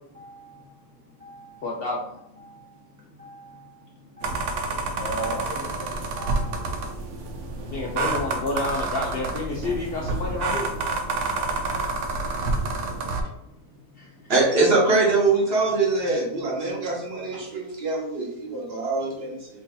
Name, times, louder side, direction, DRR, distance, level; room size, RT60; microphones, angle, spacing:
voice 1, 1.6-2.0 7.6-10.7 14.0-14.1, left 2 dB, 60° left, -1 dB, 0.6 m, -29 dB
sound 1, 4.2-13.2, right 3 dB, 85° right, 1.1 m, -28 dB
voice 2, 5.0-6.6 7.8-8.1, right 1 dB, 20° right, -6 dB, 0.5 m, -36 dB
voice 3, 14.3-19.4, right 3 dB, 50° right, -3 dB, 1.0 m, -23 dB
3.0 x 2.7 x 3.7 m, 0.80 s
omnidirectional pair, 1.5 m